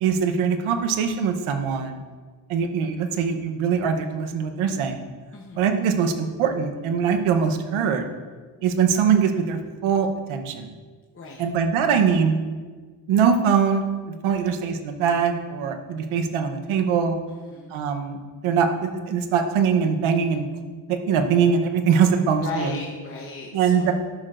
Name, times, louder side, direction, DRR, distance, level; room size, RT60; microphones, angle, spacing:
voice 1, 0.0-2.0 2.5-5.0 5.6-8.1 8.6-10.7 11.4-12.4 13.1-13.9 14.2-17.2 17.7-18.2 18.4-22.8 23.5-23.9, right 6 dB, 75° right, 6 dB, 1.0 m, -22 dB
voice 2, 5.3-5.6 11.1-11.4 14.3-14.6 17.3-17.7 22.4-23.9, left 3 dB, 25° left, -1 dB, 1.0 m, -36 dB
12.0 x 6.5 x 2.5 m, 1.4 s
cardioid pair, 95°, 49 cm